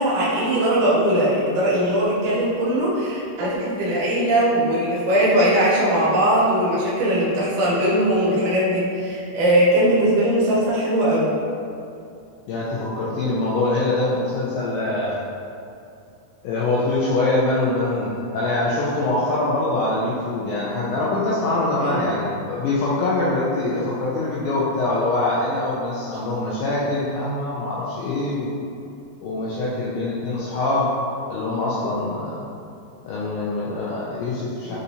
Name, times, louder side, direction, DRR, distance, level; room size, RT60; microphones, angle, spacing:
voice 1, 0.0-11.4 21.8-22.1 34.7-34.8, right 1 dB, 75° right, -8 dB, 1.9 m, -20 dB
voice 2, 12.5-15.2 16.4-28.6 29.2-30.9 31.3-32.4 33.0-34.8, left 2 dB, 85° left, -7 dB, 2.0 m, -24 dB
6.3 x 2.7 x 2.7 m, 2.5 s
omnidirectional pair, 4.7 m